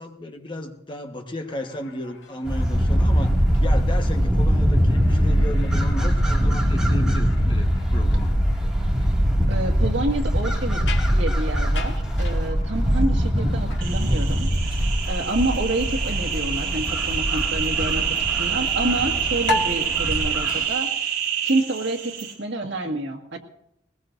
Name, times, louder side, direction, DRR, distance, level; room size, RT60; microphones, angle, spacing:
voice 1, 0.0-8.3, left 1 dB, 25° left, 4 dB, 1.3 m, -34 dB
sound 1, 1.4-21.1, left 2 dB, 85° left, 1.6 m, -39 dB
sound 2, 2.5-20.6, equal, 5° right, 2.2 m, -22 dB
voice 2, 9.5-10.8 11.1-23.4, right 2 dB, 85° right, 3 dB, 1.9 m, -28 dB
sound 3, 13.8-22.3, right 8 dB, 60° right, 4.7 m, -27 dB
20.0 x 20.0 x 2.6 m, 0.80 s
head